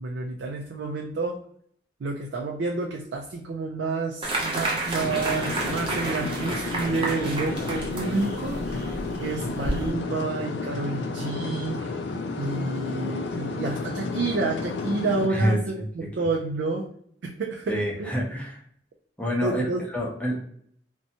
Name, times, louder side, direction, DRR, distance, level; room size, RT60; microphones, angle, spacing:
voice 1, 0.0-1.4 2.0-12.0 12.4-16.9 17.2-18.1 19.4-19.9, right 3 dB, 80° right, 0 dB, 0.4 m, -29 dB
sound 1, 4.2-9.9, right 2 dB, 30° right, 0.6 m, -31 dB
sound 2, 5.0-15.3, left 3 dB, 75° left, 0.4 m, -32 dB
voice 2, 15.3-15.8 17.7-18.6 19.2-19.6 19.9-20.3, equal, 10° left, -2 dB, 0.6 m, -26 dB
2.6 x 2.2 x 2.7 m, 0.63 s
head